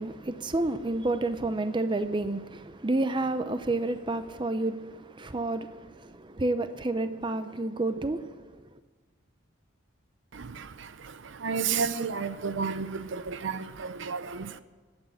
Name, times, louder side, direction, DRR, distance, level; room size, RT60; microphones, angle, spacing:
voice 1, 0.0-8.7, right 2 dB, 25° right, 0.6 m, -30 dB
voice 2, 10.3-14.6, right 5 dB, 65° right, 0.6 m, -32 dB
12.0 x 8.8 x 8.8 m
head